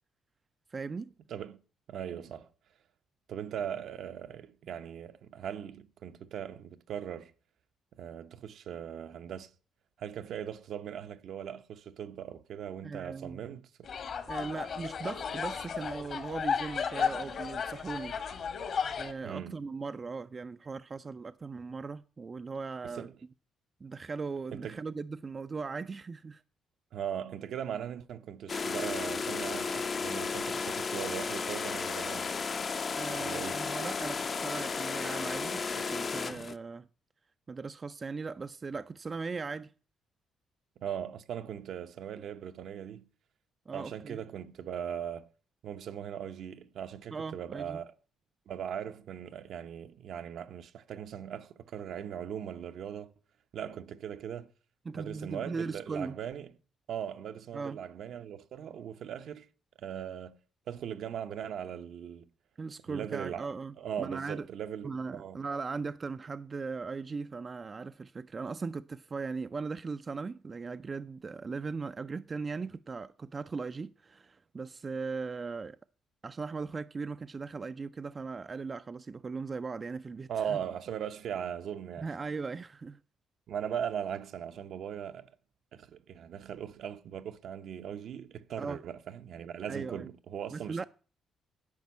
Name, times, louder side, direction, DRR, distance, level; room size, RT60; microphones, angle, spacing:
voice 1, 0.7-1.1 12.8-13.4 14.3-18.2 19.0-23.1 23.8-26.4 32.9-36.9 37.5-39.7 43.7-44.2 47.1-47.8 54.9-56.2 57.5-57.8 62.6-64.5 64.8-75.8 76.2-80.6 82.0-83.0 88.6-88.8 89.7-90.1 90.5-90.9, right 4 dB, 35° right, 0.4 m, -38 dB
voice 2, 1.3-1.6 1.9-2.5 3.3-7.3 8.0-9.5 10.0-13.9 19.2-19.6 22.8-23.1 24.5-24.8 26.9-32.3 33.1-33.7 36.3-36.4 40.8-43.0 43.7-45.3 45.6-47.9 48.5-53.1 53.5-54.5 54.9-56.5 56.9-59.5 59.8-60.3 60.7-62.3 62.9-63.5 63.8-65.5 80.3-82.1 83.5-85.3 85.7-90.9, right 9 dB, 70° right, 0.8 m, -39 dB
sound 1, 13.8-19.1, left 6 dB, 60° left, 1.6 m, -34 dB
sound 2, 28.5-36.5, left 5 dB, 40° left, 0.7 m, -34 dB
10.5 x 5.3 x 8.2 m
cardioid pair, 90°, 0 cm